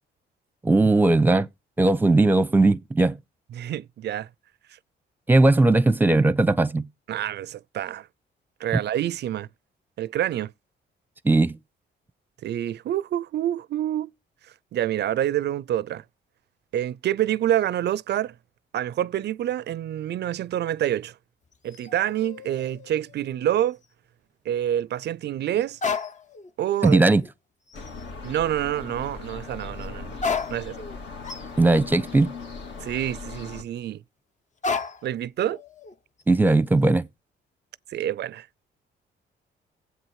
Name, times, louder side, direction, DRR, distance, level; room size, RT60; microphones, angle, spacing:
voice 1, 0.6-1.5 1.8-3.2 5.3-6.9 11.2-11.6 26.8-27.2 31.6-32.3 36.3-37.1, right 2 dB, 10° right, 0.7 m, -18 dB
voice 2, 3.5-4.3 7.1-8.1 8.6-9.5 10.0-10.5 12.4-14.1 14.7-16.0 16.7-18.3 18.7-21.1 21.6-23.8 24.5-25.8 26.6-27.0 28.2-30.1 30.5-30.8 32.8-34.0 35.0-35.6 37.9-38.5, right 11 dB, 60° right, 0.4 m, -27 dB
sound 1, 21.5-23.5 23.8-23.9 25.7-26.5 26.8-27.3 27.7-28.0 29.8-29.9 30.2-33.5 34.6-35.2 35.5-36.2, left 5 dB, 40° left, 0.8 m, -34 dB
sound 2, 27.7-33.6, left 4 dB, 65° left, 2.3 m, -39 dB
8.0 x 7.9 x 4.7 m
cardioid pair, 90°, 20 cm